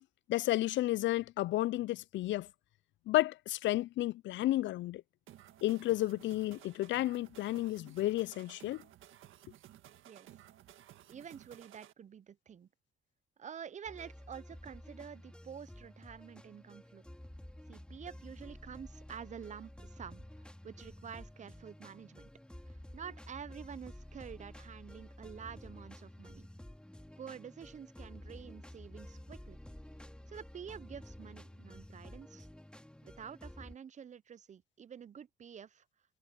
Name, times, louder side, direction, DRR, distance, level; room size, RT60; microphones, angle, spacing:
voice 1, 0.3-2.5 3.1-5.0 5.6-8.8, left 16 dB, 70° left, 0.4 m, -32 dB
sound 1, 5.3-11.9, right 12 dB, 80° right, 1.6 m, -57 dB
voice 2, 11.1-12.7 13.4-17.0 17.7-20.3 20.6-22.3 22.7-26.5 27.2-29.6 30.3-32.5 33.0-35.8, right 8 dB, 35° right, 0.5 m, -48 dB
sound 2, 13.9-33.8, left 1 dB, 5° left, 2.3 m, -51 dB
cardioid pair, 90°, 20 cm